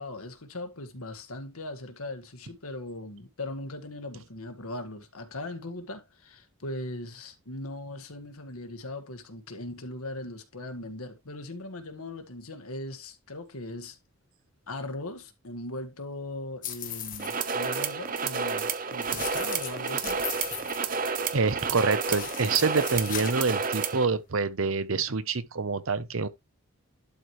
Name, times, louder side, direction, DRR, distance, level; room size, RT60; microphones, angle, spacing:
voice 1, 0.0-14.0 14.7-20.4, left 2 dB, 85° left, 1.7 m, -39 dB
sound 1, 16.6-17.4 19.0-21.4 21.9-23.6, left 9 dB, 40° left, 1.1 m, -38 dB
sound 2, 17.2-24.1, right 5 dB, 40° right, 0.7 m, -30 dB
voice 2, 21.3-26.3, right 4 dB, 70° right, 0.8 m, -26 dB
11.5 x 4.6 x 3.2 m
head